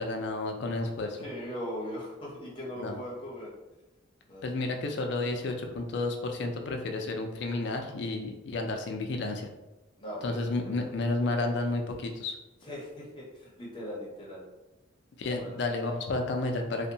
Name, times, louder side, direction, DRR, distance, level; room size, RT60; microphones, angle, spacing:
voice 1, 0.0-1.2 2.8-3.0 4.4-9.5 10.2-12.4 15.2-16.9, left 2 dB, 55° left, 4 dB, 0.3 m, -31 dB
voice 2, 1.2-3.5 4.3-4.7 10.0-10.3 10.6-10.9 12.6-14.4 15.4-15.6, equal, 25° left, -5 dB, 0.7 m, -40 dB
2.6 x 2.1 x 2.6 m, 1.0 s
head